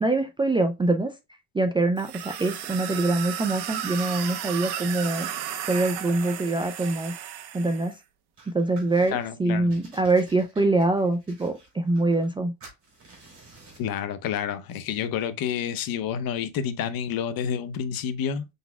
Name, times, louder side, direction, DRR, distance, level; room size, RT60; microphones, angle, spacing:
voice 1, 0.0-1.1 1.5-5.3 5.7-7.1 7.5-8.0 8.5-9.1 9.4-12.5, right 2 dB, 15° right, 0.3 m, -24 dB
sound 1, 2.0-7.9, right 10 dB, 80° right, 1.0 m, -34 dB
sound 2, 8.4-9.3 9.7-12.4 12.6-13.9, right 3 dB, 30° right, 3.3 m, -51 dB
voice 2, 9.1-9.7 13.8-18.5, left 8 dB, 60° left, 0.8 m, -29 dB
5.8 x 4.0 x 2.2 m
cardioid pair, 150°, 39 cm